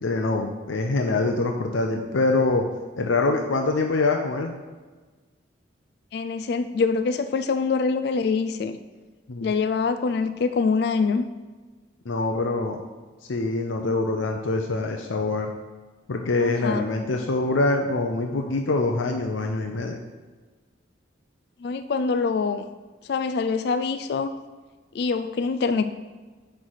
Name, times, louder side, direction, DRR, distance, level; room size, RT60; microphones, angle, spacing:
voice 1, 0.0-2.6 3.0-4.5 9.3-9.5 12.1-12.8 13.2-15.5 16.1-20.0, left 3 dB, 85° left, 3 dB, 0.6 m, -24 dB
voice 2, 6.1-8.8 9.4-11.3 16.4-16.9 21.6-22.6 23.0-24.3 24.9-25.8, left 4 dB, 55° left, 9 dB, 0.3 m, -24 dB
9.5 x 3.3 x 6.2 m, 1.3 s
head